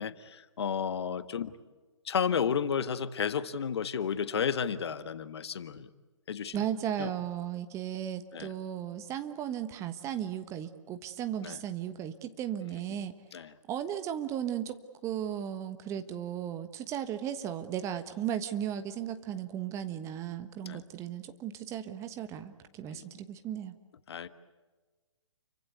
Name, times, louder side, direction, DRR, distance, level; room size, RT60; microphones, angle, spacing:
voice 1, 0.0-1.5 2.1-5.9 6.3-6.6 7.0-7.1 8.3-8.5 11.4-11.6 13.3-13.5 20.6-20.8 22.9-23.0 24.1-24.3, left 7 dB, 55° left, 13 dB, 1.5 m, -32 dB
voice 2, 6.5-13.1 13.7-14.8 15.0-23.7, right 10 dB, 20° right, 9 dB, 1.3 m, -36 dB
29.5 x 24.5 x 8.2 m, 1.3 s
figure-of-eight pair, 135°, 16 cm